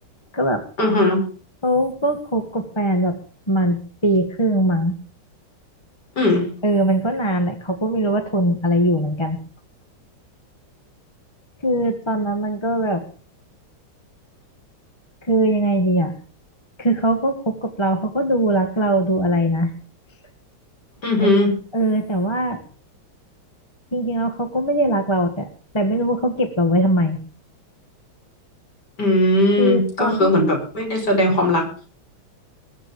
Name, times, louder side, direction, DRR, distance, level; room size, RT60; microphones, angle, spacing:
voice 1, 0.8-1.2 6.2-6.5 21.0-21.6 29.0-31.7, left 1 dB, 50° left, 1 dB, 6.4 m, -18 dB
voice 2, 1.6-3.2 3.5-5.0 6.6-9.4 11.6-13.0 15.2-16.1 16.8-19.7 21.2-21.3 21.7-22.6 23.9-25.5 25.7-27.2 29.6-30.3, right 1 dB, 15° left, 6 dB, 1.6 m, -21 dB
22.0 x 7.4 x 7.0 m, 0.40 s
omnidirectional pair, 2.2 m